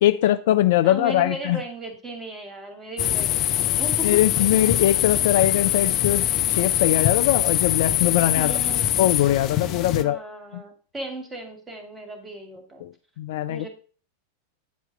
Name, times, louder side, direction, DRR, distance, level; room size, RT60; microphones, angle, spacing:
voice 1, 0.0-1.6 4.0-8.5 9.0-10.2 10.5-10.6 12.8-13.7, left 13 dB, 55° left, 0.4 m, -21 dB
voice 2, 0.8-4.2 8.4-9.0 10.0-12.9 13.5-13.7, right 1 dB, 15° right, 2.2 m, -36 dB
sound 1, 3.0-10.0, left 12 dB, 35° left, 0.9 m, -23 dB
9.5 x 4.6 x 5.6 m
figure-of-eight pair, 90°, 0 cm